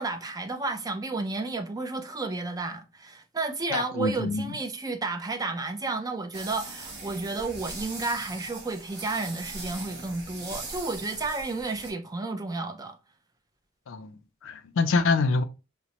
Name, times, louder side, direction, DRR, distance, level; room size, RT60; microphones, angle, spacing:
voice 1, 0.0-13.0, right 3 dB, 20° right, 0.4 m, -32 dB
voice 2, 3.7-4.6 13.9-15.4, left 3 dB, 65° left, 0.4 m, -26 dB
sound 1, 6.3-11.9, right 3 dB, 55° right, 1.1 m, -40 dB
5.0 x 2.1 x 2.8 m
head